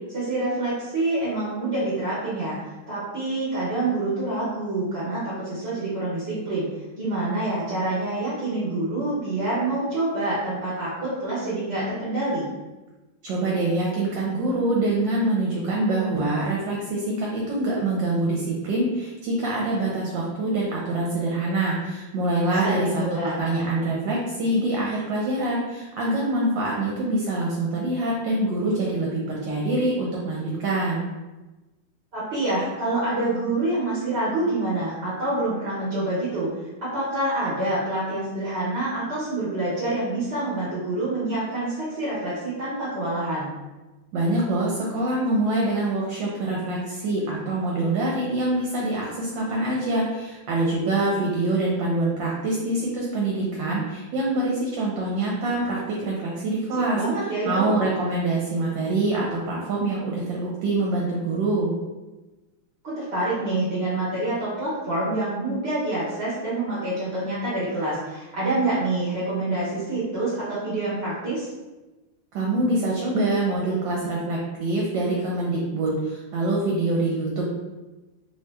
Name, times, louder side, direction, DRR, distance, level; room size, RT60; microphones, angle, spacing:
voice 1, 0.1-6.7 7.0-12.5 22.6-23.4 32.1-36.5 36.8-43.5 56.8-57.7 62.8-71.5, right 2 dB, 45° right, -9 dB, 0.9 m, -27 dB
voice 2, 13.2-23.0 23.4-31.0 44.1-57.0 57.4-61.7 72.3-77.5, right 2 dB, 70° right, -3 dB, 1.3 m, -25 dB
3.1 x 2.8 x 3.3 m, 1.1 s
omnidirectional pair, 2.2 m